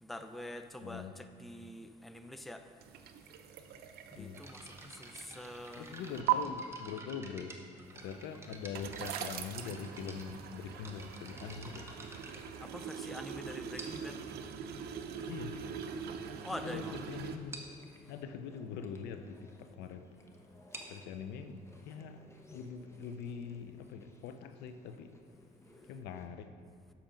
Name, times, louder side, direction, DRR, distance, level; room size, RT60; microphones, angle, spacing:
voice 1, 0.1-2.7 4.1-6.0 12.6-14.2 16.4-16.9, left 1 dB, ahead, 8 dB, 0.4 m, -45 dB
voice 2, 0.8-1.1 4.1-4.4 5.7-7.6 7.9-11.9 15.2-15.6 16.6-17.6 18.1-20.1 20.9-25.2 25.9-26.5, left 6 dB, 85° left, 9 dB, 0.6 m, -43 dB
sound 1, 2.8-6.3 7.8-17.4, right 10 dB, 70° right, 0.6 m, -41 dB
sound 2, 4.3-13.2 13.8-14.2 15.0-15.1 15.7-15.8 16.1-16.3 16.6-16.7 17.0-17.1 17.5-17.8 20.5-24.0, right 2 dB, 15° right, 0.9 m, -51 dB
Chewing mastication, 10.2-26.3, left 1 dB, 15° left, 0.8 m, -60 dB
7.5 x 5.9 x 5.1 m, 2.1 s
cardioid pair, 110°, 17 cm